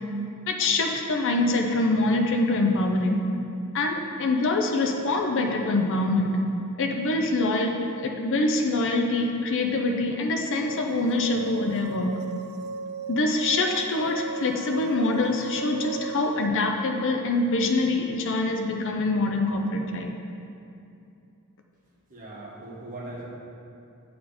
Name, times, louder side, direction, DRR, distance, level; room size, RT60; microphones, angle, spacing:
voice 1, 0.5-3.2 3.7-6.4 6.8-12.1 13.1-20.1, left 2 dB, 60° left, 3 dB, 0.6 m, -25 dB
sound 1, 10.6-16.5, right 4 dB, 85° right, 0.4 m, -36 dB
voice 2, 22.1-23.3, right 2 dB, 40° right, -7 dB, 1.7 m, -39 dB
9.1 x 4.3 x 4.2 m, 2.6 s
head